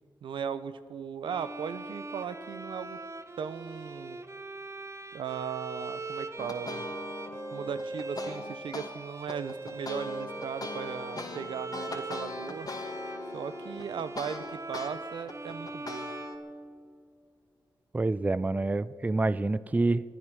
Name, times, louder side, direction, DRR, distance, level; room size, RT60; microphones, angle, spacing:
voice 1, 0.2-3.0 3.4-4.2 5.1-6.8 7.5-12.7 13.3-16.1, right 7 dB, 80° right, 13 dB, 0.8 m, -37 dB
Bowed string instrument, 1.2-17.1, right 2 dB, 35° right, 1.0 m, -41 dB
sound 1, 6.4-8.9 9.3-14.9 15.3-16.4, left 3 dB, 50° left, 2.1 m, -40 dB
voice 2, 17.9-20.0, right 2 dB, 20° right, 18 dB, 0.5 m, -27 dB
24.5 x 9.0 x 6.3 m, 2.1 s
cardioid pair, 60°, 8 cm